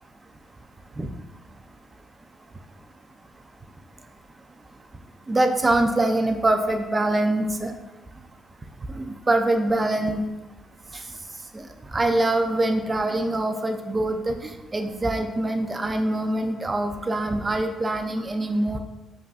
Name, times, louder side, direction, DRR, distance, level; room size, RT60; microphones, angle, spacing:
voice 1, 5.3-7.7 8.9-10.2 11.5-11.7 11.9-18.8, right 2 dB, 25° right, 5 dB, 0.4 m, -24 dB
5.3 x 2.5 x 2.4 m, 1.1 s
cardioid pair, 90°, 0 cm